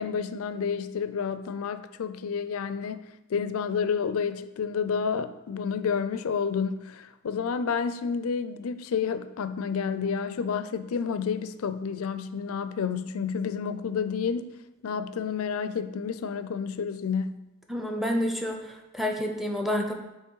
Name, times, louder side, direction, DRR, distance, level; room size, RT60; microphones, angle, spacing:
voice 1, 0.0-14.5 14.8-17.4, left 6 dB, 75° left, 12 dB, 0.4 m, -30 dB
voice 2, 17.7-19.9, equal, ahead, 3 dB, 0.6 m, -29 dB
8.2 x 2.9 x 4.6 m, 0.97 s
head